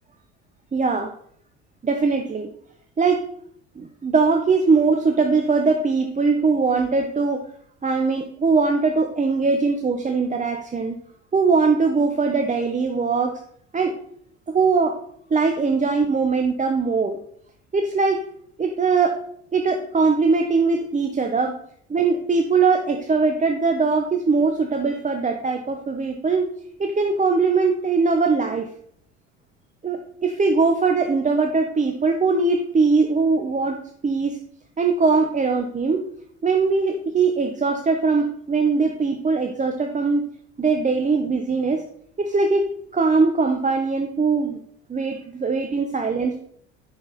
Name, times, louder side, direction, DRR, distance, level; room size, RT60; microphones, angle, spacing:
voice 1, 0.7-1.1 1.8-2.5 3.0-3.2 3.8-7.4 7.8-11.0 11.3-13.4 13.7-13.9 14.5-15.0 15.3-17.2 17.7-18.2 18.6-19.2 19.5-21.6 21.9-26.5 26.8-28.7 29.8-34.4 34.8-36.0 36.4-40.2 40.6-41.8 42.2-44.6 44.9-46.4, right 4 dB, 20° right, 4 dB, 0.9 m, -21 dB
7.8 x 6.1 x 4.2 m, 0.64 s
hypercardioid pair, 65°, 37 cm